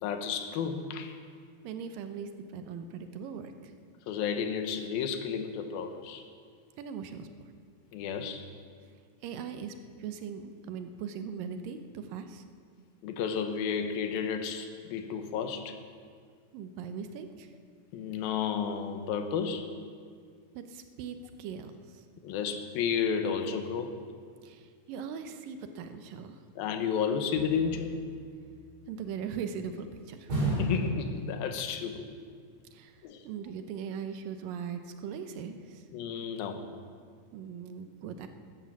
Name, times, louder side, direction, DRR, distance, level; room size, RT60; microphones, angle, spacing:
voice 1, 0.0-1.2 4.1-6.2 7.9-8.4 13.0-15.8 17.9-19.7 22.2-24.0 26.6-28.1 30.4-32.1 33.0-33.3 35.9-36.7, left 6 dB, 90° left, 8 dB, 2.9 m, -32 dB
voice 2, 1.6-3.7 6.8-7.3 9.2-12.4 16.5-17.5 20.5-22.0 24.4-26.4 28.9-30.3 32.7-35.9 37.3-38.3, right 7 dB, 75° right, 8 dB, 2.6 m, -40 dB
sound 1, 27.3-29.0 30.3-31.8 32.1-32.2, right 1 dB, 50° right, 5.2 m, -34 dB
13.5 x 13.5 x 7.3 m, 2.1 s
omnidirectional pair, 4.1 m